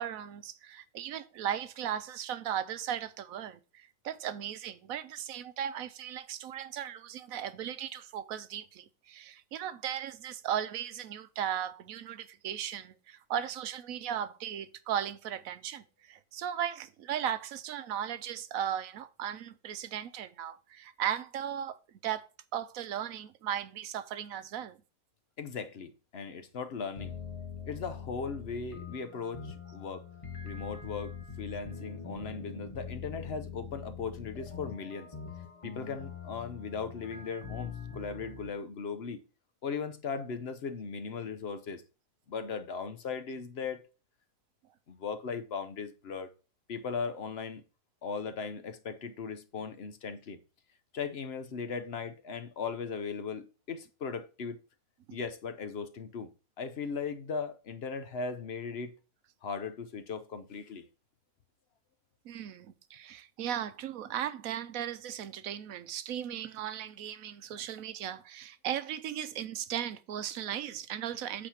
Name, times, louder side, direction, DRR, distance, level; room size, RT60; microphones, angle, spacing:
voice 1, 0.0-21.8 22.0-24.8 62.2-71.5, right 10 dB, 65° right, 1.0 m, -37 dB
voice 2, 25.4-27.2 27.7-30.1 30.4-35.1 35.6-39.2 39.6-41.8 42.3-43.9 44.9-46.3 46.7-47.6 48.0-50.4 50.9-54.6 55.1-56.3 56.6-58.9 59.4-60.9, left 5 dB, 50° left, 0.9 m, -38 dB
sound 1, 27.0-38.5, left 6 dB, 25° left, 0.9 m, -43 dB
8.7 x 4.2 x 5.7 m
omnidirectional pair, 1.7 m